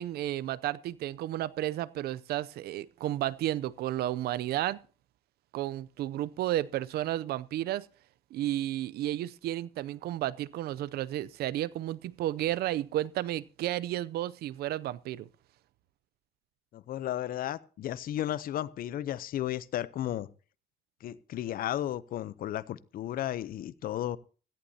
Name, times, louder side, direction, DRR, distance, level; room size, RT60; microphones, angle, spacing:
voice 1, 0.0-4.8 5.5-7.9 8.3-15.3, right 13 dB, 70° right, 0.6 m, -32 dB
voice 2, 16.7-20.3 21.0-24.2, left 12 dB, 60° left, 0.7 m, -34 dB
17.0 x 14.5 x 2.8 m
cardioid pair, 110°, 17 cm